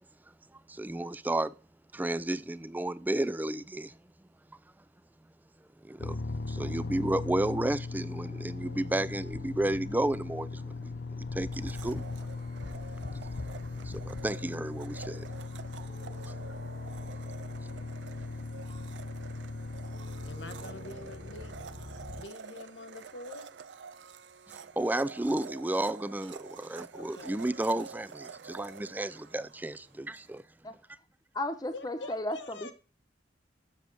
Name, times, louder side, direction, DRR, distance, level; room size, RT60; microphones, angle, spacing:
voice 1, 0.7-1.5 1.9-3.9 5.9-6.2 6.5-12.0 13.8-15.2 24.8-30.4, right 1 dB, 10° right, 0.4 m, -32 dB
sound 1, 6.0-22.2, left 3 dB, 60° left, 0.8 m, -39 dB
sound 2, 8.2-10.7 12.3-14.2 15.6-18.3 19.6-24.1, right 2 dB, 60° right, 1.9 m, -55 dB
Domestic sounds home sounds, 11.5-30.3, right 5 dB, 75° right, 0.5 m, -49 dB
voice 2, 20.2-21.5 22.1-23.5 26.9-27.4 31.7-32.7, left 2 dB, 80° left, 1.3 m, -45 dB
voice 3, 31.3-32.7, left 1 dB, 20° left, 1.1 m, -34 dB
7.5 x 6.9 x 6.2 m
head